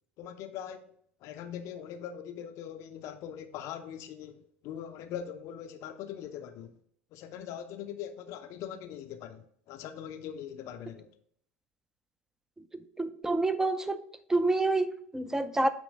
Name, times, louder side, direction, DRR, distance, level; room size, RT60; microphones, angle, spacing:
voice 1, 0.2-0.9 1.2-6.8 7.1-11.1, left 9 dB, 45° left, 0.6 m, -41 dB
voice 2, 12.7-14.0 14.3-15.7, right 2 dB, 5° right, 0.5 m, -28 dB
8.6 x 3.0 x 5.2 m
figure-of-eight pair, 80°, 7 cm